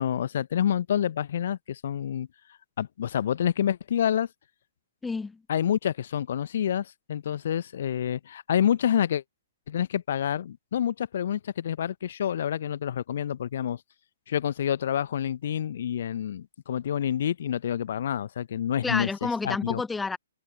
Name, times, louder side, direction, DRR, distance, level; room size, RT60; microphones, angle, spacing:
voice 1, 0.0-2.3 2.8-4.3 5.5-9.2 9.7-13.8 14.3-19.1 19.4-19.8, left 9 dB, 50° left, 1.0 m, -28 dB
voice 2, 5.0-5.4 18.8-20.2, left 4 dB, 5° left, 0.9 m, -29 dB
figure-of-eight pair, 125°, 0 cm